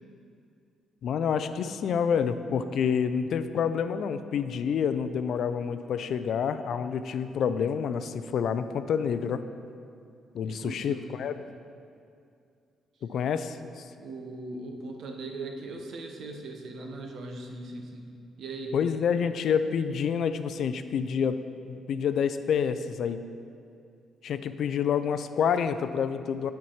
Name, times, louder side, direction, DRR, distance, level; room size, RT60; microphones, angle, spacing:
voice 1, 1.0-9.4 10.3-11.3 13.0-13.8 18.7-21.4 21.6-23.2 24.2-26.5, left 7 dB, 65° left, 11 dB, 0.3 m, -28 dB
voice 2, 10.4-11.1 14.0-18.1 18.4-18.8, right 2 dB, 65° right, 3 dB, 0.9 m, -39 dB
7.4 x 4.6 x 5.6 m, 2.4 s
cardioid pair, 90°, 0 cm